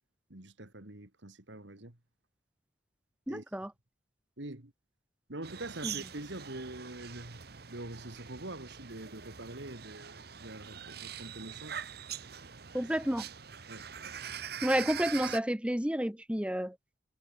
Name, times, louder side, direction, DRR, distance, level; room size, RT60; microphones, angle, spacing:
voice 1, 0.3-2.0 3.3-3.4 4.4-4.7 5.3-7.4 7.7-11.8 13.7-13.8, right 1 dB, 80° right, 2.5 m, -44 dB
voice 2, 3.3-3.7 5.8-5.9 12.7-13.3 14.6-16.7, equal, 5° right, 0.9 m, -30 dB
sound 1, 5.4-15.4, right 8 dB, 55° right, 1.2 m, -43 dB
head